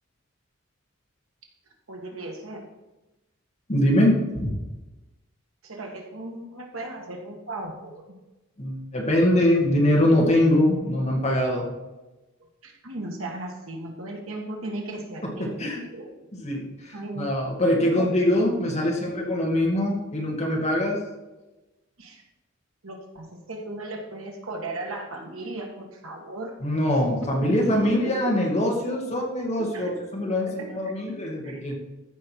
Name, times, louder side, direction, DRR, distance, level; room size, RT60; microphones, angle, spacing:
voice 1, 1.9-2.7 5.6-8.2 12.4-16.1 16.9-17.3 17.8-18.1 22.0-22.2 22.8-26.6 27.2-28.0 29.6-30.0 30.5-31.7, right 2 dB, 85° right, 1 dB, 1.8 m, -36 dB
voice 2, 3.7-4.6 8.6-11.7 15.2-15.8 16.3-21.0 26.6-31.7, left 1 dB, 35° left, -2 dB, 2.2 m, -23 dB
14.0 x 5.3 x 4.6 m, 1.1 s
head